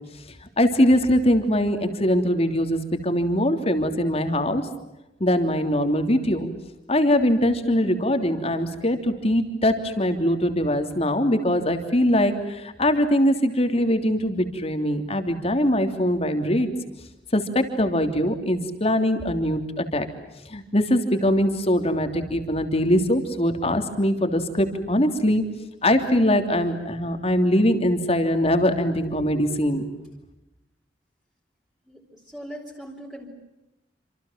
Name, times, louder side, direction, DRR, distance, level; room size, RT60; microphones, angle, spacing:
voice 1, 0.6-4.6 5.2-6.5 6.9-16.7 17.3-20.1 20.5-25.4 25.8-29.8, equal, 35° left, 7 dB, 3.2 m, -22 dB
voice 2, 31.9-33.3, equal, 5° right, -2 dB, 4.3 m, -40 dB
28.0 x 27.0 x 7.5 m, 0.95 s
head